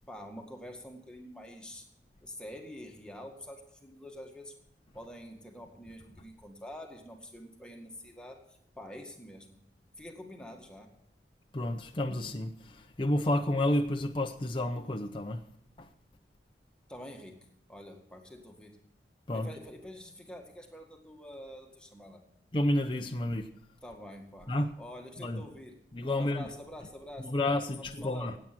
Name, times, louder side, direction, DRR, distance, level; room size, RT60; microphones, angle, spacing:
voice 1, 0.1-1.9 2.2-4.6 4.9-9.6 10.0-10.9 16.9-18.8 19.3-22.2 23.8-25.8 26.2-28.4, left 1 dB, 5° left, 1.9 m, -47 dB
voice 2, 11.5-15.4 15.8-15.9 19.3-19.5 22.5-23.5 24.5-24.7 25.2-25.4 25.9-26.5 27.2-28.3, left 1 dB, 30° left, 0.7 m, -30 dB
16.5 x 8.9 x 6.1 m
head